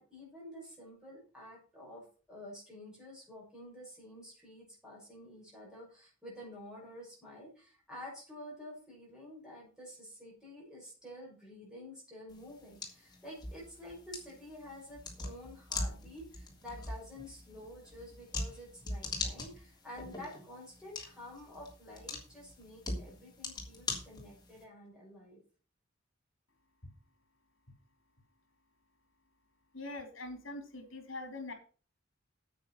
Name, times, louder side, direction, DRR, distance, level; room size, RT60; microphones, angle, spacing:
voice 1, 0.0-25.4, left 1 dB, 5° right, -5 dB, 6.6 m, -50 dB
sound 1, 12.3-24.6, left 2 dB, 20° left, 3.1 m, -42 dB
voice 2, 29.7-31.5, left 2 dB, 70° left, 6 dB, 3.2 m, -43 dB
9.4 x 8.3 x 5.8 m, 0.38 s
head